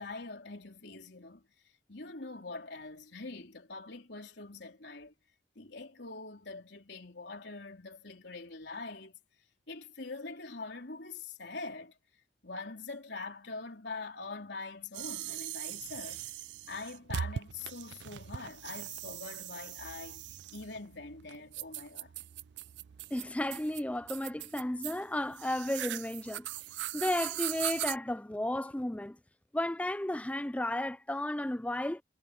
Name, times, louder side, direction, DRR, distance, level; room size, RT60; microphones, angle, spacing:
voice 1, 0.0-1.4 1.9-5.1 5.6-9.2 9.7-12.0 12.4-16.3 16.7-20.3 20.5-22.1, left 3 dB, 75° left, 3.5 m, -44 dB
sound 1, 14.9-28.0, right 11 dB, 80° right, 0.4 m, -40 dB
voice 2, 23.1-26.5 26.9-29.2 29.5-32.0, left 1 dB, 10° left, 0.4 m, -33 dB
head